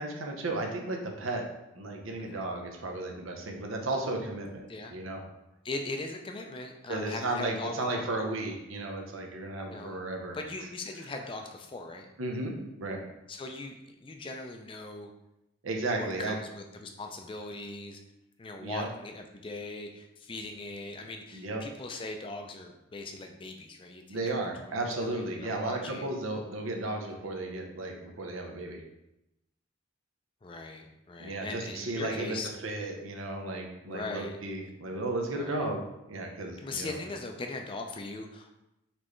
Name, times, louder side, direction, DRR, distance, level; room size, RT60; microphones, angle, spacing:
voice 1, 0.0-1.5 1.7-5.2 6.9-10.4 12.2-13.0 15.6-16.4 18.6-18.9 21.3-21.7 24.1-28.8 31.2-37.0, right 2 dB, 90° right, 2 dB, 0.7 m, -34 dB
voice 2, 5.6-8.1 9.7-10.0 10.3-12.1 13.3-15.1 15.9-18.0 18.4-24.4 25.0-26.1 27.2-27.3 30.4-32.5 33.9-34.3 35.3-35.7 36.6-38.6, left 2 dB, 25° left, 4 dB, 0.3 m, -40 dB
4.2 x 3.3 x 3.1 m, 0.89 s
head